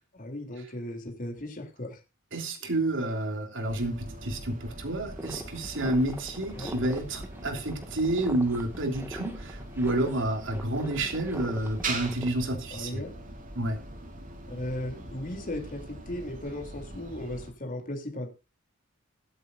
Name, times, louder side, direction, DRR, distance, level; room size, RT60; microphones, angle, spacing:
voice 1, 0.1-2.0 6.5-6.7 12.7-13.1 14.5-18.3, left 1 dB, 40° left, 2 dB, 3.3 m, -36 dB
voice 2, 2.3-13.0 13.5-13.8, right 1 dB, 65° right, 4 dB, 3.2 m, -29 dB
sound 1, 3.7-17.5, right 2 dB, 40° right, 3.3 m, -42 dB
sound 2, 5.1-12.3, right 1 dB, 10° right, 1.9 m, -43 dB
22.0 x 8.3 x 2.6 m, 0.30 s
head